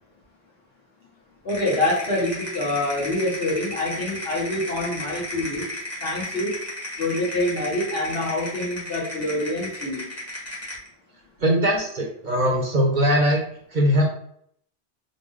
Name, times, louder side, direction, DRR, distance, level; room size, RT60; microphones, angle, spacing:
voice 1, 1.4-5.7 6.0-6.6 7.0-10.1, left 1 dB, 60° left, -5 dB, 1.5 m, -26 dB
sound 1, 1.5-10.9, left 1 dB, 15° left, 1.1 m, -34 dB
voice 2, 11.4-13.4 13.7-14.0, equal, 45° right, -1 dB, 0.9 m, -20 dB
4.0 x 2.2 x 3.1 m, 0.66 s
omnidirectional pair, 1.2 m